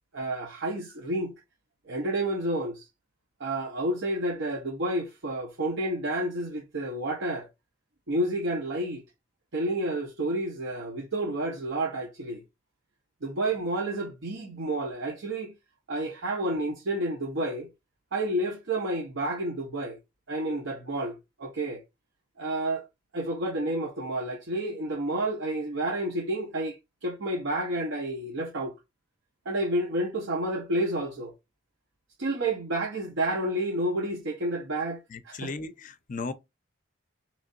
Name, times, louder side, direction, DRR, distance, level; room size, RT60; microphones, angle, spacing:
voice 1, 0.1-1.3 1.9-2.9 3.4-7.5 8.1-9.0 9.5-12.4 13.2-15.5 15.9-17.7 18.1-20.0 20.3-21.8 22.4-22.9 23.1-28.7 29.5-31.3 32.2-35.0 35.2-35.5, right 1 dB, 65° right, 0.7 m, -30 dB
voice 2, 35.1-36.3, left 3 dB, 40° left, 0.5 m, -36 dB
3.7 x 3.1 x 2.5 m
head